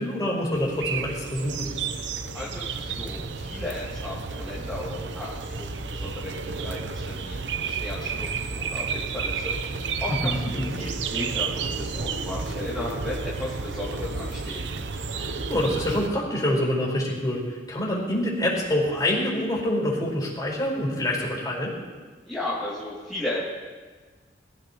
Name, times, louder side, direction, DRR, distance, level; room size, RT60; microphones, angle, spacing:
voice 1, 0.0-1.7 10.1-10.7 15.2-21.8, left 1 dB, 20° left, -3 dB, 4.7 m, -26 dB
sound 1, 0.5-16.1, right 4 dB, 80° right, 0.8 m, -31 dB
voice 2, 2.3-7.4 7.6-9.6 10.0-10.4 10.7-14.6 22.3-23.4, left 1 dB, ahead, -10 dB, 2.6 m, -35 dB
23.5 x 15.0 x 3.0 m, 1.4 s
head